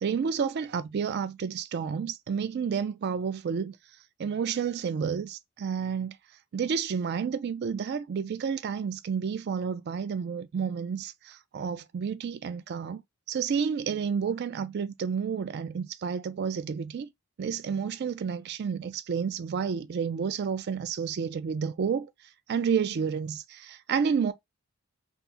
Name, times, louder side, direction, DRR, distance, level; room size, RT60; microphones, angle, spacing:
voice 1, 0.0-3.7 4.2-6.1 6.5-13.0 13.3-17.1 17.4-22.1 22.5-24.3, right 6 dB, 50° right, 0.3 m, -30 dB
2.8 x 2.0 x 3.5 m
head